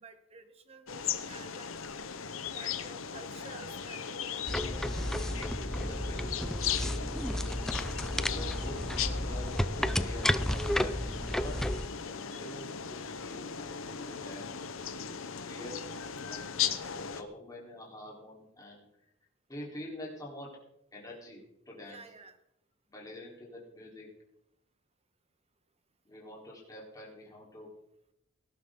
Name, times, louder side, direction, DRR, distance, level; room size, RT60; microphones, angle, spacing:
voice 1, 0.0-1.7 2.5-4.3 21.8-22.4, right 3 dB, 30° right, 8 dB, 1.4 m, -51 dB
sound 1, 0.9-17.2, left 7 dB, 80° left, 1.0 m, -37 dB
sound 2, 4.5-11.9, equal, ahead, 0.4 m, -32 dB
voice 2, 5.4-14.5 14.8-18.8 19.5-20.5 20.9-22.0 22.9-24.1 26.0-27.7, left 1 dB, 20° left, -4 dB, 4.0 m, -47 dB
18.5 x 11.5 x 3.9 m, 0.78 s
head